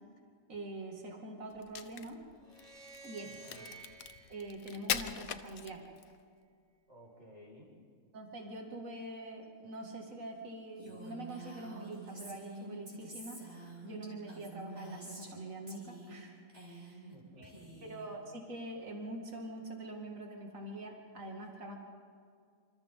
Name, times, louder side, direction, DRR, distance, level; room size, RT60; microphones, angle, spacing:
voice 1, 0.5-2.2 3.0-3.4 4.3-5.8 8.1-13.4 13.8-17.1 17.4-17.5 17.8-21.8, right 2 dB, 70° right, 1 dB, 2.8 m, -44 dB
Crack, 1.5-6.2, left 9 dB, 90° left, 1.3 m, -40 dB
sound 1, 2.4-5.7, right 3 dB, 5° left, 5.9 m, -54 dB
voice 2, 3.2-3.7 6.9-7.8 17.1-18.1, equal, 55° right, -1 dB, 5.7 m, -56 dB
Female speech woman speaking, 10.8-15.4 15.7-16.2 16.5-17.1 17.4-18.1, right 2 dB, 30° right, 4.7 m, -48 dB
28.0 x 27.0 x 3.8 m, 2.2 s
omnidirectional pair, 1.4 m